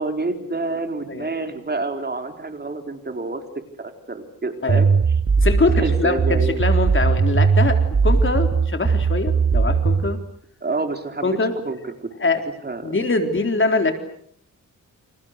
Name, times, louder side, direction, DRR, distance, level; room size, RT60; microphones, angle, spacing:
voice 1, 0.0-3.4 3.8-4.9 5.7-6.6 10.6-11.4 11.6-12.1 12.6-13.1, right 3 dB, 30° right, 6 dB, 4.1 m, -28 dB
sound 1, 4.7-10.1, right 5 dB, 50° right, 6.7 m, -18 dB
voice 2, 5.4-10.2 11.2-11.5 12.2-12.4 12.8-13.9, left 3 dB, 40° left, 6 dB, 3.8 m, -23 dB
29.5 x 28.0 x 6.7 m, 0.65 s
wide cardioid pair, 100°, 32 cm